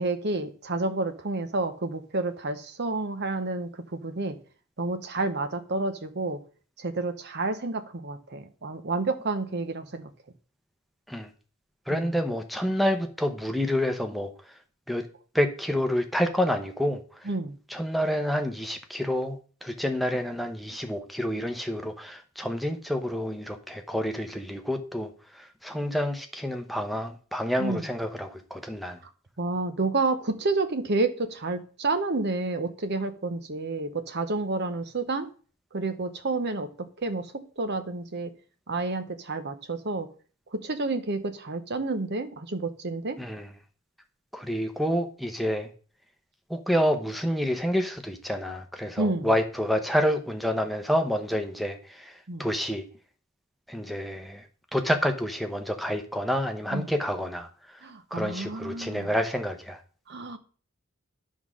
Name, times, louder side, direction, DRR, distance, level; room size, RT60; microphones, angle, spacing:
voice 1, 0.0-4.4 4.8-6.4 6.8-10.1 11.9-12.1 17.3-17.6 27.6-27.9 29.4-35.3 35.7-36.7 37.0-38.3 38.7-40.1 40.5-43.2 49.0-49.3 52.3-52.5 56.7-56.9 57.8-59.1 60.1-60.4, right 3 dB, 50° right, 9 dB, 0.9 m, -30 dB
voice 2, 11.9-14.3 14.9-15.1 15.3-17.3 17.7-29.0 43.2-43.5 44.3-45.7 46.5-52.8 53.7-54.4 54.7-57.8 58.1-59.8, equal, ahead, 5 dB, 0.8 m, -28 dB
10.5 x 3.7 x 6.2 m, 0.41 s
head